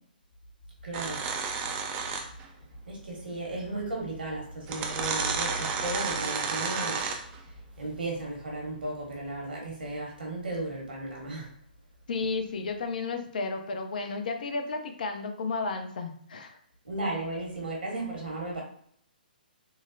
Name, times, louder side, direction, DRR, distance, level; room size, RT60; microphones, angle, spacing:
voice 1, 0.8-1.2 2.6-7.1 7.4-11.5 16.8-18.6, right 2 dB, 75° right, -2 dB, 1.3 m, -35 dB
sound 1, 0.9-2.5 3.8-3.9 4.6-7.4, right 5 dB, 25° right, 0.4 m, -31 dB
voice 2, 12.1-16.6, left 4 dB, 60° left, 5 dB, 0.5 m, -33 dB
3.8 x 2.0 x 2.6 m, 0.63 s
figure-of-eight pair, 125°, 5 cm